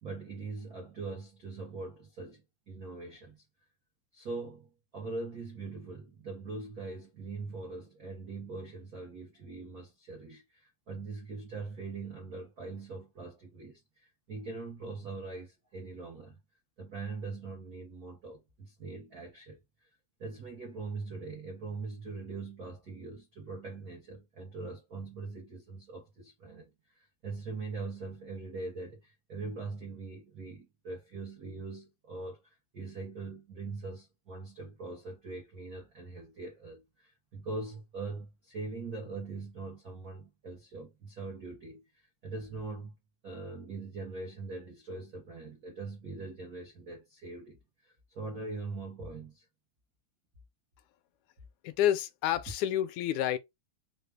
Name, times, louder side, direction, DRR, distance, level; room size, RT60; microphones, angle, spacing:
voice 1, 0.0-3.4 4.1-16.4 16.8-19.9 20.2-42.9 43.2-49.5, right 3 dB, 80° right, 0.8 m, -42 dB
voice 2, 51.6-53.4, left 11 dB, 80° left, 1.9 m, -29 dB
5.1 x 2.3 x 3.2 m
omnidirectional pair, 3.4 m